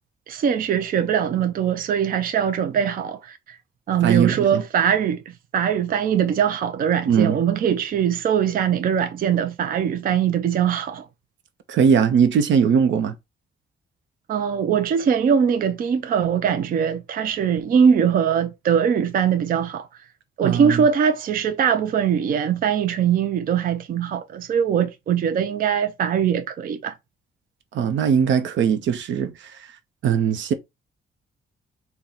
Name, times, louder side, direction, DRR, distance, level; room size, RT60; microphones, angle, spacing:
voice 1, 0.3-3.6 3.9-11.1 14.3-19.9 20.4-26.9, right 8 dB, 50° right, 0.4 m, -21 dB
voice 2, 4.0-4.6 7.1-7.4 11.7-13.1 20.4-20.9 27.7-29.6 30.0-30.5, right 7 dB, 85° right, 0.7 m, -20 dB
4.3 x 2.2 x 3.8 m
wide cardioid pair, 150°, 19 cm